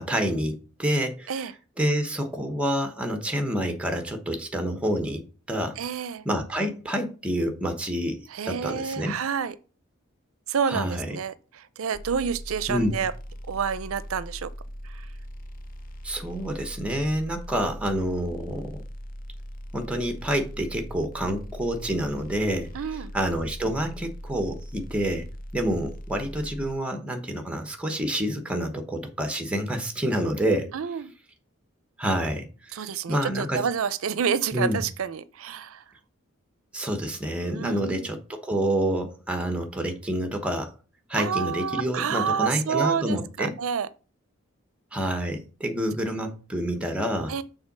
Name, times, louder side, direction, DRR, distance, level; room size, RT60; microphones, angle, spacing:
voice 1, 0.0-1.5 1.8-5.8 6.2-9.2 10.7-11.2 12.7-13.1 16.0-18.8 19.7-22.7 23.1-30.7 32.0-32.8 33.1-33.7 34.5-34.8 36.7-40.7 41.1-43.6 44.9-47.3, equal, 5° right, 1.0 m, -28 dB
voice 2, 5.8-6.2 8.3-9.5 10.5-13.1 13.5-14.5 22.7-23.1 30.7-31.1 32.7-35.8 37.5-38.1 41.1-43.9 47.3-47.4, right 7 dB, 80° right, 0.5 m, -29 dB
sound 1, 11.9-26.7, equal, 40° left, 0.7 m, -40 dB
6.6 x 3.7 x 6.0 m
head